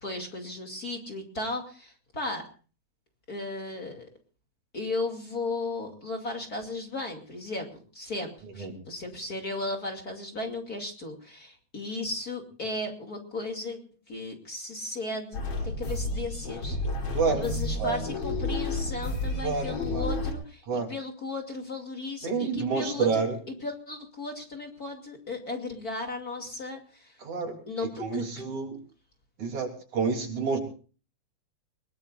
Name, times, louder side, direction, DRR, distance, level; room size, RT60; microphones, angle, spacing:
voice 1, 0.0-2.4 3.3-4.1 4.7-13.8 14.1-16.8 17.2-27.2 27.7-28.3, left 2 dB, 30° left, 3 dB, 2.8 m, -35 dB
sound 1, 15.3-20.3, left 2 dB, 50° left, 4.3 m, -31 dB
voice 2, 19.4-20.1 20.7-20.9 22.2-23.4 27.2-27.6 28.0-28.8 29.4-30.6, right 5 dB, 70° right, 2 dB, 4.7 m, -28 dB
22.0 x 21.5 x 2.5 m, 0.38 s
omnidirectional pair, 3.4 m